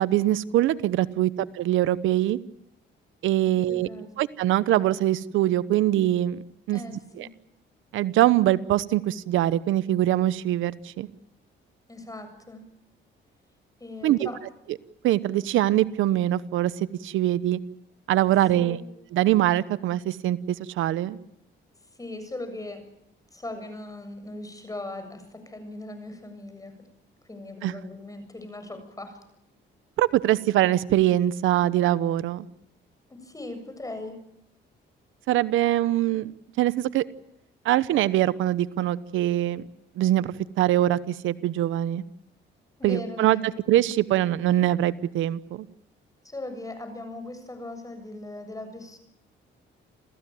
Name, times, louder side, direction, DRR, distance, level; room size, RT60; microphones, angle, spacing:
voice 1, 0.0-2.4 3.2-3.9 4.2-6.4 6.7-7.3 7.9-11.1 14.0-14.3 15.0-17.6 18.1-18.8 19.1-21.2 27.6-27.7 30.0-32.5 35.3-36.3 36.6-37.0 37.6-39.7 40.0-42.0 42.8-45.7, right 13 dB, 85° right, 16 dB, 0.9 m, -23 dB
voice 2, 3.4-4.2 6.7-7.3 11.9-12.6 13.8-14.4 18.5-18.8 22.0-22.8 23.3-26.9 27.3-29.2 33.1-34.2 42.8-43.6 46.2-49.0, left 2 dB, 15° left, 8 dB, 7.4 m, -39 dB
28.0 x 15.5 x 9.3 m, 0.79 s
cardioid pair, 90°, 20 cm